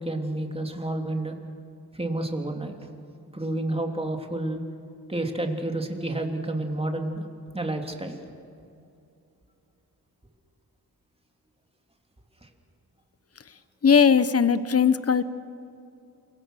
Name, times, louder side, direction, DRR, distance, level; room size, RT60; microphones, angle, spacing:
voice 1, 0.0-1.4 1.9-2.9 3.3-4.6 5.1-7.2 7.5-8.2 12.4-12.5, right 1 dB, 15° right, 3 dB, 3.2 m, -30 dB
voice 2, 13.8-15.2, left 6 dB, 40° left, 13 dB, 1.0 m, -19 dB
28.5 x 24.5 x 6.5 m, 2.6 s
wide cardioid pair, 75°, 38 cm